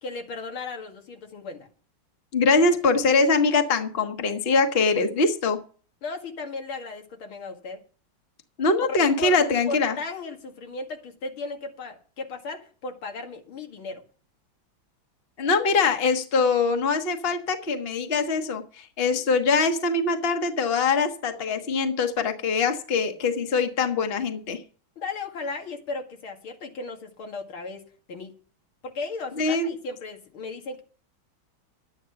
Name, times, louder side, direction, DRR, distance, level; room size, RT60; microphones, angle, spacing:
voice 1, 0.0-1.7 6.0-7.8 8.9-9.4 9.7-14.0 25.0-28.3 28.8-30.8, left 3 dB, 85° left, 2.9 m, -36 dB
voice 2, 2.3-5.6 8.6-10.0 15.4-24.6 29.4-29.8, left 4 dB, 35° left, 1.3 m, -23 dB
12.0 x 9.7 x 5.9 m
omnidirectional pair, 2.2 m